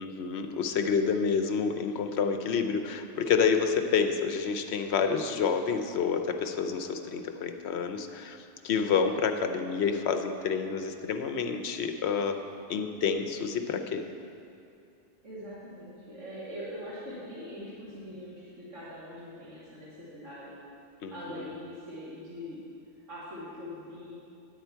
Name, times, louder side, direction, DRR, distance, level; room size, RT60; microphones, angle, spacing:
voice 1, 0.0-12.4 12.7-14.1 21.0-21.5, left 6 dB, 65° left, 6 dB, 0.8 m, -29 dB
voice 2, 15.2-20.6 21.1-22.6 23.1-24.1, equal, 80° right, -10 dB, 2.0 m, -42 dB
10.0 x 8.4 x 4.4 m, 2.5 s
omnidirectional pair, 1.2 m